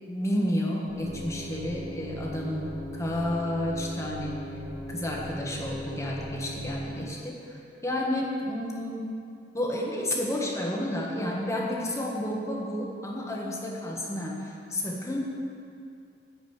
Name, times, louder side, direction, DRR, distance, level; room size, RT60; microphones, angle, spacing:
voice 1, 0.1-4.4 4.9-9.1 9.5-15.2, left 1 dB, 15° left, -2 dB, 1.5 m, -31 dB
sound 1, 0.9-6.9, equal, 40° right, 1.7 m, -39 dB
10.0 x 5.3 x 8.0 m, 2.4 s
head